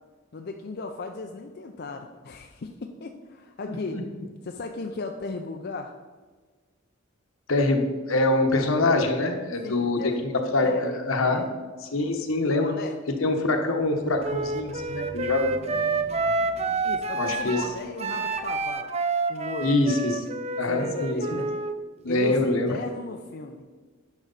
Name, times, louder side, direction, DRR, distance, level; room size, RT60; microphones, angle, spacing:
voice 1, 0.3-4.0 4.4-5.9 9.6-10.2 10.6-11.5 12.4-13.0 16.8-18.9 19.3-19.8 20.7-21.5 22.1-23.6, left 3 dB, 50° left, 4 dB, 0.5 m, -36 dB
voice 2, 3.6-4.0 7.5-11.4 11.8-12.7 13.2-15.5 17.1-17.6 19.6-20.3 20.6-21.4 22.0-22.7, left 2 dB, 80° left, 4 dB, 1.2 m, -24 dB
sound 1, 13.7-18.7, equal, ahead, 1.1 m, -47 dB
Wind instrument woodwind instrument, 14.2-21.7, right 4 dB, 30° right, 0.5 m, -28 dB
10.5 x 6.1 x 4.0 m, 1.4 s
head